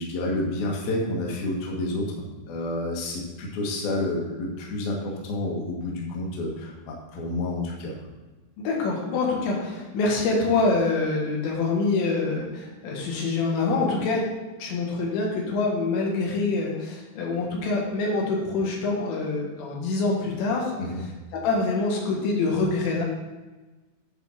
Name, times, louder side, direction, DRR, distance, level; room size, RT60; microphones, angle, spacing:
voice 1, 0.0-2.1 2.5-8.0 20.8-21.0, left 1 dB, 65° left, -1 dB, 3.0 m, -29 dB
voice 2, 8.6-14.2 14.6-20.7 21.3-23.0, left 3 dB, 90° left, -2 dB, 4.0 m, -25 dB
11.0 x 4.5 x 6.3 m, 1.2 s
omnidirectional pair, 5.0 m